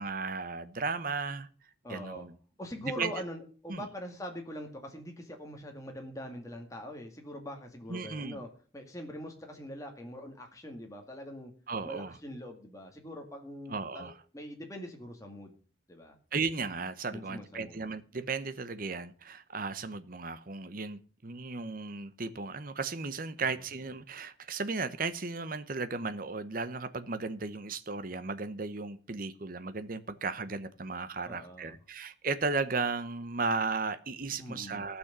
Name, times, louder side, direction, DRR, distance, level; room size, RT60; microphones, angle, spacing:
voice 1, 0.0-1.5 1.9-2.4 2.8-3.1 3.7-3.9 7.9-8.4 11.7-12.2 13.7-14.1 16.3-35.0, right 4 dB, 45° right, 0.9 m, -35 dB
voice 2, 1.8-2.3 2.6-8.5 8.7-11.5 11.8-15.6 15.9-16.2 17.1-17.9 31.2-31.8 34.3-34.9, equal, 15° left, 2.1 m, -43 dB
15.0 x 6.3 x 6.8 m
head